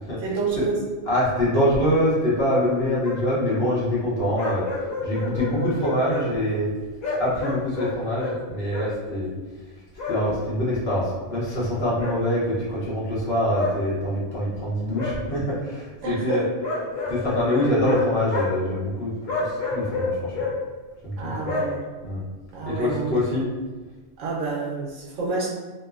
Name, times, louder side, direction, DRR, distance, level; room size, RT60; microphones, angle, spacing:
voice 1, 0.2-0.8 16.0-16.5 21.2-21.9 22.5-23.2 24.2-25.5, right 3 dB, 80° right, -4 dB, 1.1 m, -28 dB
voice 2, 1.1-4.6 5.0-6.7 7.2-9.3 10.1-16.4 17.1-20.5 21.0-21.6 22.0-22.2 22.6-23.4, equal, 55° left, -7 dB, 1.0 m, -24 dB
sound 1, 2.6-2.7 3.0-3.2 4.4-6.2 7.0-8.4 8.7-8.9 10.0-10.2 12.0-12.2 13.5-13.7 14.9-15.2 16.6-18.0 18.3-18.5 19.3-20.5 21.4-21.7, left 3 dB, 85° left, 1.1 m, -29 dB
2.9 x 2.1 x 2.3 m, 1.3 s
omnidirectional pair, 1.3 m